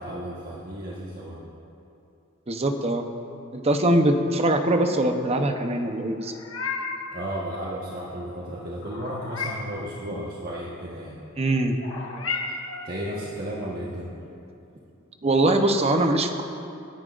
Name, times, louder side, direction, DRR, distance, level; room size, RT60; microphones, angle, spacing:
voice 1, 0.0-1.4 7.1-11.2 12.8-14.1, right 1 dB, 45° right, -6 dB, 1.4 m, -33 dB
voice 2, 2.5-3.1 3.5-6.3 11.4-11.8 15.2-16.4, right 1 dB, 30° right, 5 dB, 0.8 m, -22 dB
Meow, 6.2-7.1 8.8-9.8 11.8-12.9, left 4 dB, 70° left, 1.3 m, -33 dB
26.0 x 10.5 x 2.5 m, 2.7 s
head